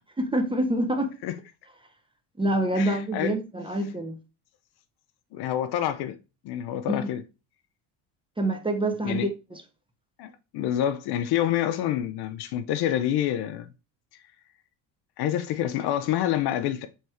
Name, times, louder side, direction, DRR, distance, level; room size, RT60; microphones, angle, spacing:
voice 1, 0.2-1.1 2.4-4.2 6.9-7.1 8.4-9.6, right 1 dB, 10° right, 0.6 m, -26 dB
voice 2, 2.7-3.3 5.3-6.2 6.4-7.2 9.0-9.3 10.2-13.7 15.2-16.9, left 11 dB, 50° left, 0.5 m, -27 dB
3.3 x 3.2 x 4.2 m
hypercardioid pair, 65°, 49 cm